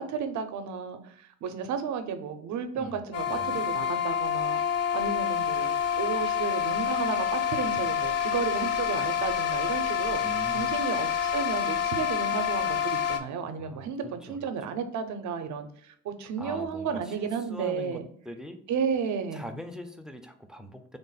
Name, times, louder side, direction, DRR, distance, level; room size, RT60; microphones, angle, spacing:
voice 1, 0.0-4.6 4.9-10.2 10.5-18.0 18.7-19.6, right 6 dB, 70° right, 8 dB, 0.6 m, -33 dB
sound 1, 3.1-13.2, left 8 dB, 55° left, 0.5 m, -28 dB
voice 2, 3.2-3.6 10.2-10.7 13.6-14.4 16.4-18.0 18.3-18.6 19.3-21.0, equal, ahead, 7 dB, 0.4 m, -42 dB
3.6 x 2.0 x 3.9 m, 0.63 s
cardioid pair, 90°, 30 cm